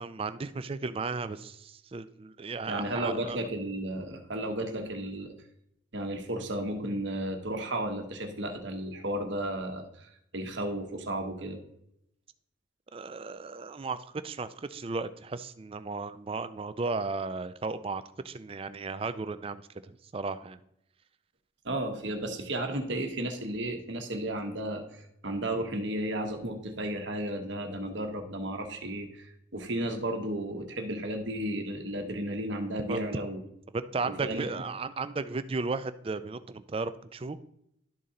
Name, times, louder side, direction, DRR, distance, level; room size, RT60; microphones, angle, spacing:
voice 1, 0.0-3.4 12.9-20.6 32.9-33.2 33.7-37.4, right 3 dB, 30° right, 13 dB, 0.4 m, -35 dB
voice 2, 2.7-5.3 5.9-11.6 21.6-33.4 34.0-34.5, right 1 dB, 65° right, 5 dB, 1.2 m, -33 dB
12.0 x 4.1 x 3.7 m, 0.76 s
head